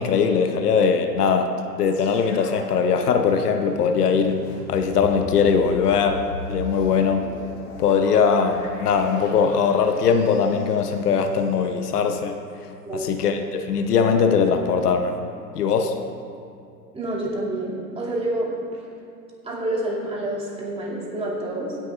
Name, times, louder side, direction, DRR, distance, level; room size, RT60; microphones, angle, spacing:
voice 1, 0.0-4.4 4.7-7.3 7.8-12.4 12.9-15.1 15.6-15.9, left 6 dB, 65° left, 6 dB, 0.9 m, -21 dB
sound 1, 1.8-11.9 12.5-12.6, left 3 dB, 50° left, 2.4 m, -39 dB
voice 2, 16.9-18.6 19.4-21.8, right 1 dB, 10° right, -5 dB, 2.5 m, -28 dB
17.0 x 10.5 x 2.5 m, 2.5 s
hypercardioid pair, 110°, 49 cm